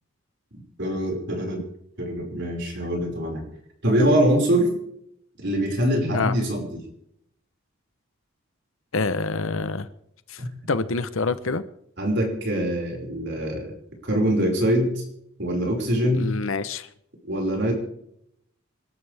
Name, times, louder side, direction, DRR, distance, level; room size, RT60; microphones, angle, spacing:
voice 1, 0.8-1.6 2.0-3.4 3.8-4.7 5.4-6.8 12.0-13.7 14.0-15.0 15.4-16.3 17.2-17.7, equal, 55° right, 5.5 m, -23 dB
voice 2, 8.9-9.9 10.3-11.6 16.1-16.9, left 3 dB, 70° left, 0.9 m, -26 dB
27.5 x 12.5 x 3.5 m
head